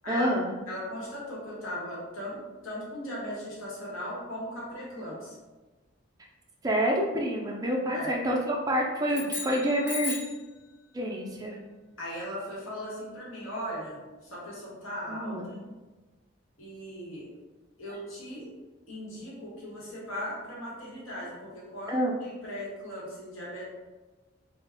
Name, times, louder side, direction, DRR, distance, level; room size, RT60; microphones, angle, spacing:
voice 1, 0.1-0.5 6.6-10.2 10.9-11.6 15.1-15.5 21.9-22.1, equal, 20° right, -1 dB, 0.3 m, -28 dB
voice 2, 0.7-5.4 7.9-8.2 12.0-15.3 16.6-17.3 17.8-18.5 18.9-23.6, equal, 90° left, -5 dB, 1.0 m, -38 dB
sound 1, 9.1-10.5, left 4 dB, 60° left, 1.0 m, -36 dB
2.3 x 2.1 x 3.4 m, 1.2 s
head